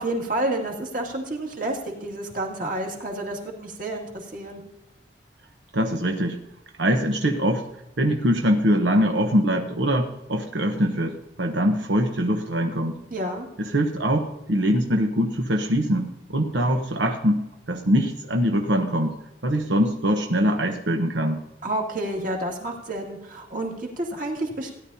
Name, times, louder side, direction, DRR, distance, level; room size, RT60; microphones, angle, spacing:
voice 1, 0.0-4.6 13.1-13.5 21.6-24.7, right 1 dB, 45° right, 0 dB, 2.3 m, -29 dB
voice 2, 5.7-6.4 6.8-7.6 8.0-13.0 13.6-19.2 19.4-21.4, equal, 90° right, 3 dB, 1.1 m, -23 dB
17.0 x 11.0 x 2.8 m, 0.89 s
head